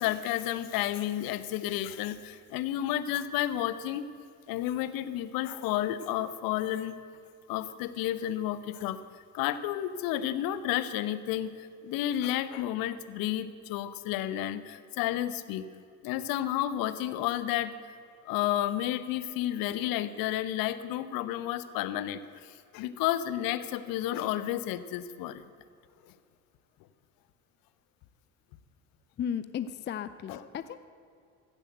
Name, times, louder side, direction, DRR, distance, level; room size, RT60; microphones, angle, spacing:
voice 1, 0.0-4.0 4.5-6.9 7.5-9.0 9.3-15.7 16.0-17.8 18.2-25.4 26.1-26.2 30.3-30.4, left 12 dB, 50° left, 14 dB, 0.9 m, -31 dB
voice 2, 29.2-30.8, left 8 dB, 25° left, 13 dB, 0.5 m, -35 dB
15.5 x 8.4 x 7.9 m, 2.4 s
figure-of-eight pair, 60°, 44 cm